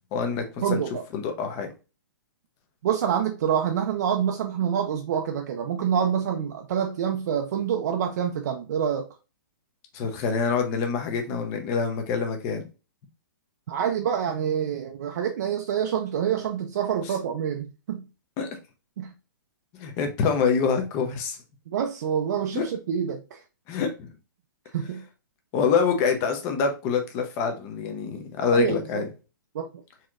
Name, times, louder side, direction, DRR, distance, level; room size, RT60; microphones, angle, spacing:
voice 1, 0.1-0.8 1.1-1.7 9.9-12.7 18.4-18.5 19.8-21.4 22.5-22.6 23.7-24.1 25.5-29.1, left 6 dB, 25° left, 0.7 m, -26 dB
voice 2, 0.6-1.0 2.8-9.1 13.7-18.1 19.0-19.1 21.7-23.4 24.7-25.1 28.4-29.1 29.5-29.7, right 8 dB, 55° right, 0.5 m, -27 dB
4.1 x 2.9 x 2.4 m
hypercardioid pair, 155°, 11 cm